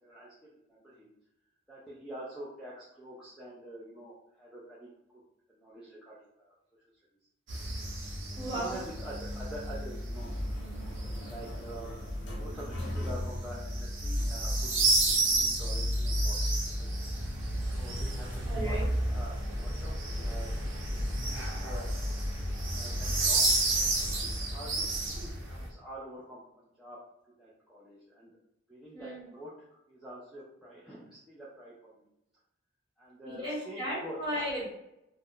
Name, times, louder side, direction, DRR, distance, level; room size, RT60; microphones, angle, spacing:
voice 1, 0.0-1.1 1.7-4.9 5.5-6.5 8.3-10.3 10.6-10.8 11.2-11.9 12.4-17.1 17.7-18.8 19.0-20.5 20.8-21.9 22.2-23.6 24.0-27.0 27.4-28.3 28.7-29.5 29.9-32.1 33.0-34.2, right 1 dB, ahead, -9 dB, 0.4 m, -47 dB
sound 1, 7.5-25.7, right 1 dB, 80° right, 0.7 m, -31 dB
voice 2, 8.4-8.8 18.5-18.9 28.9-29.3 33.2-34.7, equal, 25° right, -7 dB, 1.3 m, -35 dB
sound 2, 10.1-25.1, left 1 dB, 65° left, 0.7 m, -45 dB
2.4 x 2.1 x 3.6 m, 0.85 s
head